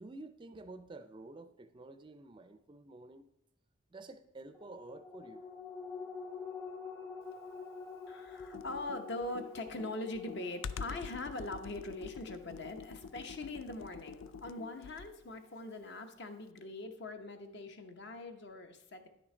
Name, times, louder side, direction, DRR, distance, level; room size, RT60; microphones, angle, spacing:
voice 1, 0.0-3.3 3.9-5.4, right 2 dB, 25° right, 10 dB, 0.4 m, -50 dB
sound 1, 4.5-15.4 15.7-15.8, left 5 dB, 10° left, 0.7 m, -48 dB
voice 2, 8.1-19.1, left 2 dB, 55° left, 6 dB, 0.8 m, -42 dB
Computer keyboard, 8.4-15.3, left 5 dB, 80° left, 0.4 m, -46 dB
10.0 x 6.2 x 4.3 m, 0.84 s
head